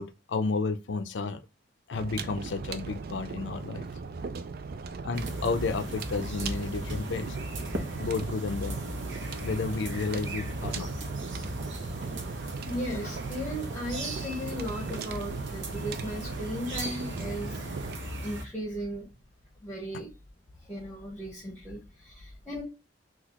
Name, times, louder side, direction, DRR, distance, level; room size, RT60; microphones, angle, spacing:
voice 1, 0.0-1.4 1.9-3.8 5.0-7.4 8.0-8.8 9.4-10.9 12.0-12.1, left 4 dB, 80° left, 0.5 m, -32 dB
sound 1, 1.9-18.0, right 4 dB, 55° right, 0.4 m, -38 dB
sound 2, 5.1-18.4, right 1 dB, 80° right, 0.9 m, -38 dB
voice 2, 12.7-17.6 18.2-19.1 19.6-20.1 20.7-22.6, equal, 15° left, 1.0 m, -36 dB
4.0 x 2.4 x 2.9 m
head